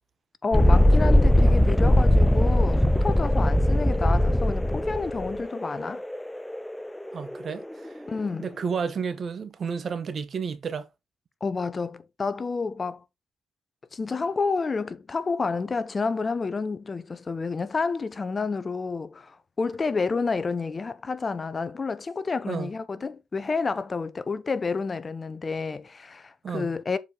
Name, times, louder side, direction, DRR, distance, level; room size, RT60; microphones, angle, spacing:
voice 1, 0.4-6.0 8.1-8.5 11.4-13.0 13.9-27.0, left 4 dB, 30° left, 0.8 m, -29 dB
Thunderstorm, 0.5-8.0, left 1 dB, 5° left, 0.4 m, -20 dB
voice 2, 7.1-8.0 8.4-10.9 22.5-22.7 26.4-26.7, right 6 dB, 50° right, 1.1 m, -31 dB
7.2 x 4.6 x 3.9 m
cardioid pair, 90°, 0 cm